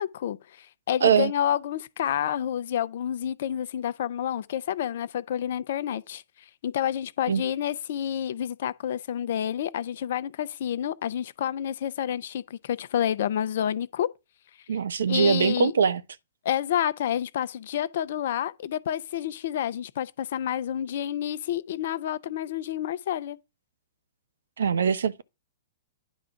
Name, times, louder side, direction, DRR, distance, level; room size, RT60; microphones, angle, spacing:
voice 1, 0.0-6.2 6.6-14.1 15.1-15.7 16.4-23.4, left 10 dB, 60° left, 0.7 m, -29 dB
voice 2, 1.0-1.3 7.3-7.4 14.7-16.0 24.6-25.2, right 6 dB, 75° right, 0.7 m, -22 dB
10.0 x 3.6 x 5.8 m
hypercardioid pair, 115°, 0 cm